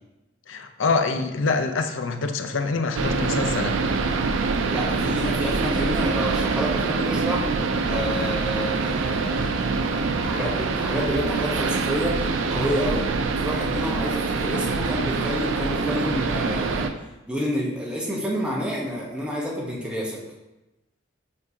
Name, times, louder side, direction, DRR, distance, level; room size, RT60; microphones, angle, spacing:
voice 1, 0.5-3.7, left 4 dB, 85° left, 7 dB, 0.6 m, -25 dB
sound 1, 2.9-16.9, right 4 dB, 85° right, 0.5 m, -25 dB
voice 2, 4.7-7.4 7.8-9.5 9.9-12.2 12.5-13.1 13.4-16.9 17.3-20.2, equal, 5° right, -4 dB, 1.0 m, -29 dB
7.1 x 4.7 x 2.8 m, 1.0 s
head